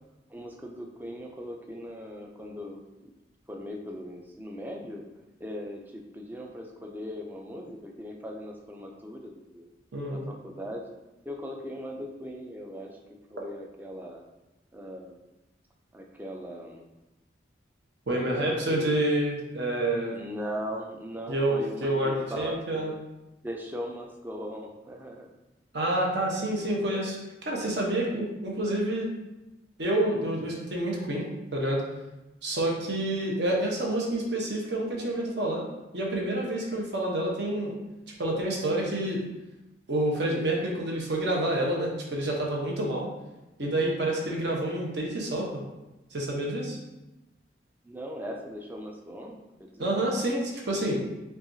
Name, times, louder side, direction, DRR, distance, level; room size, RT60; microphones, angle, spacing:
voice 1, 0.3-3.1 3.5-5.0 5.4-9.7 10.1-10.8 11.2-13.0 13.3-14.2 14.7-15.2 15.9-16.8 18.1-19.0 20.1-23.0 23.4-25.3 47.8-50.0, equal, 10° right, 1 dB, 0.3 m, -39 dB
voice 2, 9.9-10.2 18.1-20.2 21.3-22.9 25.7-27.2 27.5-29.1 29.8-31.2 31.5-31.8 32.4-35.7 35.9-37.7 38.2-39.2 39.9-43.1 43.6-45.6 46.1-46.8 49.8-51.0, right 1 dB, 60° right, -2 dB, 0.8 m, -28 dB
5.6 x 2.4 x 2.6 m, 1.0 s
head